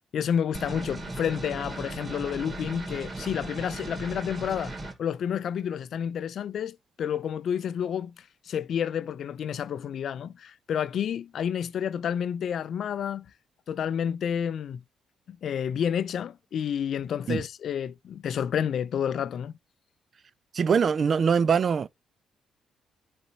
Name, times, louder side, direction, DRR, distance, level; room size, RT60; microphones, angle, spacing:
voice 1, 0.1-4.7 5.0-8.1 8.5-13.3 13.7-14.8 15.3-19.6, left 8 dB, 65° left, 0.5 m, -30 dB
sound 1, 0.5-4.9, right 2 dB, 30° right, 3.0 m, -37 dB
voice 2, 20.5-21.9, right 6 dB, 50° right, 0.4 m, -23 dB
10.5 x 4.2 x 2.8 m
cardioid pair, 90°, 0 cm